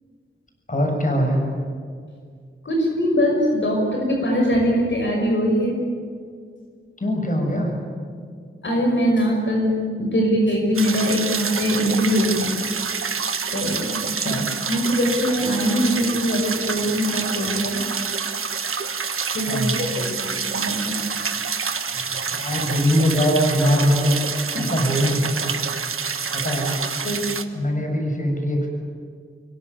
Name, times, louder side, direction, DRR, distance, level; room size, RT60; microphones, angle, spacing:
voice 1, 0.7-1.4 7.0-7.8 14.2-14.5 19.5-19.8 21.9-25.6 26.3-26.8 27.5-28.7, equal, 40° left, 3 dB, 6.7 m, -22 dB
voice 2, 2.6-5.8 8.6-12.6 13.5-14.3 14.6-17.8 19.3-21.0 24.5-24.7 27.0-27.3, equal, 65° left, 0 dB, 5.6 m, -22 dB
sound 1, 10.7-27.4, right 5 dB, 85° right, 1.4 m, -27 dB
25.5 x 23.0 x 9.7 m, 2.1 s
wide cardioid pair, 105°, 21 cm